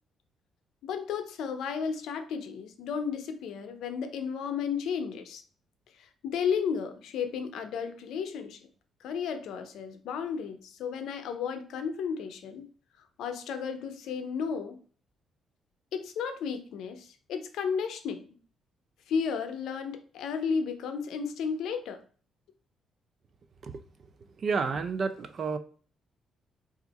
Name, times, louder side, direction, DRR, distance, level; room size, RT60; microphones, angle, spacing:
voice 1, 0.8-5.4 6.0-8.6 9.0-12.7 13.2-14.8 15.9-18.3 19.1-22.0, left 6 dB, 80° left, 8 dB, 0.5 m, -33 dB
voice 2, 24.4-25.6, right 5 dB, 50° right, 10 dB, 0.5 m, -30 dB
3.4 x 2.5 x 4.0 m, 0.42 s
cardioid pair, 90°, 0 cm